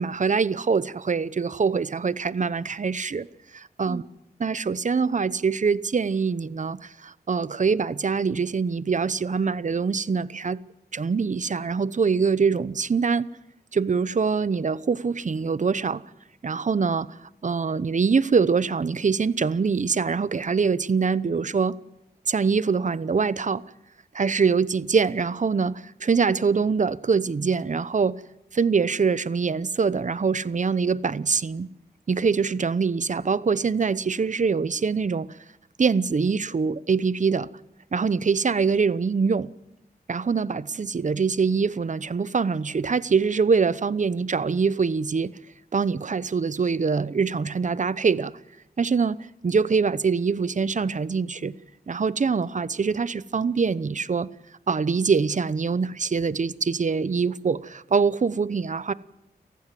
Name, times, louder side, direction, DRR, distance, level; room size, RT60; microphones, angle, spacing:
voice 1, 0.0-3.3 3.5-4.0 4.4-10.6 10.9-13.3 13.7-16.0 16.4-21.8 22.3-23.6 24.1-28.2 28.5-31.7 32.1-35.4 35.8-37.5 37.9-39.5 40.1-45.3 45.7-48.3 48.8-49.2 49.4-51.5 51.9-54.3 54.7-58.9, right 5 dB, 45° right, 0.8 m, -24 dB
28.5 x 15.0 x 7.7 m
wide cardioid pair, 75°, 17 cm